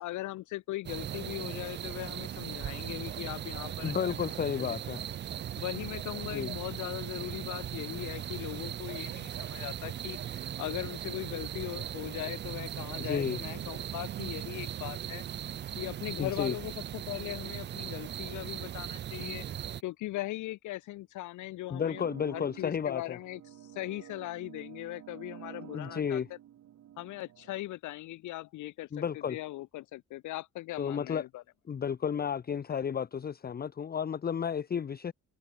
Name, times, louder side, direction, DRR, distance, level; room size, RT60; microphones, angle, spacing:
voice 1, 0.0-3.9 4.6-4.8 5.6-15.2 15.8-19.5 19.8-26.2 27.0-31.4, left 17 dB, 75° left, 0.6 m, -39 dB
sound 1, 0.9-19.8, right 10 dB, 35° right, 0.4 m, -38 dB
voice 2, 3.8-5.0 6.3-6.5 13.0-13.4 16.2-16.6 21.7-23.2 25.7-26.3 28.9-29.4 30.8-31.2 31.7-35.1, left 7 dB, 30° left, 0.7 m, -32 dB
sound 2, 21.7-27.6, right 11 dB, 65° right, 1.9 m, -50 dB
cardioid pair, 90°, 30 cm